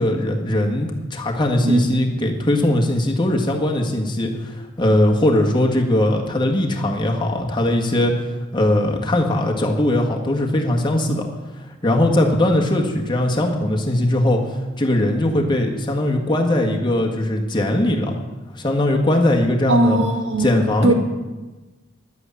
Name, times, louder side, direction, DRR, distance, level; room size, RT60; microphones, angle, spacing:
voice 1, 0.0-8.1 8.5-11.3 11.8-18.2 18.5-20.0 20.4-20.9, left 1 dB, 25° left, 1 dB, 1.6 m, -20 dB
voice 2, 1.6-2.0 19.7-20.9, right 2 dB, 85° right, 4 dB, 1.7 m, -20 dB
11.0 x 8.2 x 8.3 m, 1.2 s
head